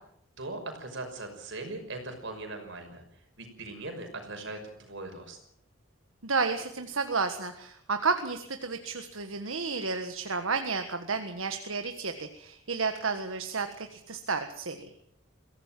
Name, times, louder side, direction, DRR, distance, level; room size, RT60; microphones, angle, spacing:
voice 1, 0.4-3.0 3.4-5.4, right 2 dB, 60° right, 5 dB, 5.9 m, -40 dB
voice 2, 6.2-14.9, right 4 dB, 80° right, 7 dB, 1.6 m, -31 dB
23.0 x 16.5 x 7.7 m, 0.72 s
head